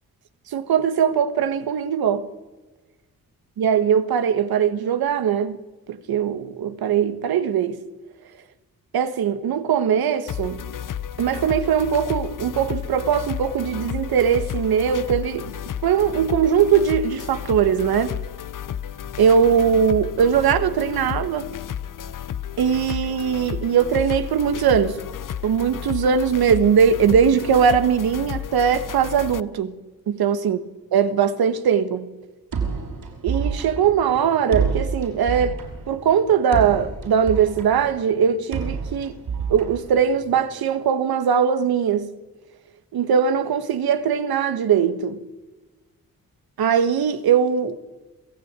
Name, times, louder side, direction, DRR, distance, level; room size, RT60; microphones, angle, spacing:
voice 1, 0.5-2.3 3.6-5.6 5.9-7.8 8.9-10.6 11.2-15.5 15.8-18.2 19.2-21.5 22.6-25.0 25.4-29.7 30.1-30.6 30.9-32.1 33.2-35.6 35.9-39.1 39.5-42.1 42.9-45.2 46.6-47.8, right 7 dB, 90° right, 1.6 m, -20 dB
sound 1, 10.3-29.4, left 9 dB, 60° left, 0.9 m, -32 dB
sound 2, 32.5-40.4, right 5 dB, 70° right, 5.9 m, -29 dB
27.0 x 16.5 x 9.0 m
cardioid pair, 65°, 36 cm